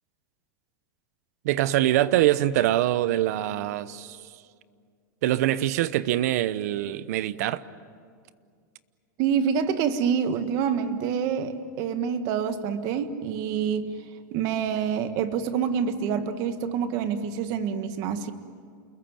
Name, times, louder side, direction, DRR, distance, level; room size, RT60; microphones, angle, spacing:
voice 1, 1.4-4.2 5.2-7.6, right 14 dB, 55° right, 0.9 m, -24 dB
voice 2, 9.2-13.9 14.3-18.3, right 7 dB, 40° right, 1.5 m, -27 dB
29.0 x 21.5 x 9.2 m
supercardioid pair, 165°, 10 cm